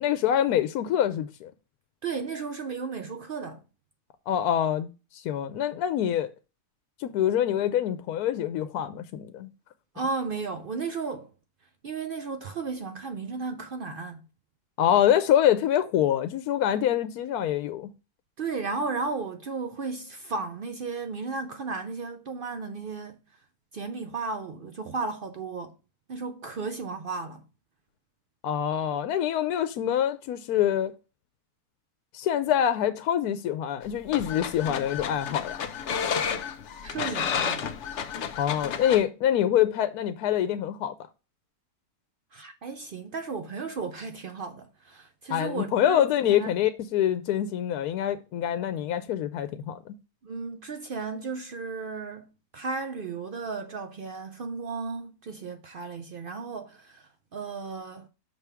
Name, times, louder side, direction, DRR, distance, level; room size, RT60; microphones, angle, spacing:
voice 1, 0.0-1.5 4.3-4.9 5.1-6.3 7.0-9.5 14.8-17.9 28.4-30.9 32.1-35.6 38.4-40.9 45.3-50.0, left 10 dB, 80° left, 1.1 m, -25 dB
voice 2, 2.0-3.6 9.9-11.3 11.8-14.2 18.4-23.2 23.7-25.7 26.1-27.4 36.8-37.7 42.3-46.5 50.2-52.3 52.5-58.1, right 4 dB, 70° right, 0.5 m, -34 dB
sound 1, 33.8-39.0, left 7 dB, 60° left, 0.9 m, -31 dB
6.0 x 3.4 x 5.7 m
omnidirectional pair, 1.6 m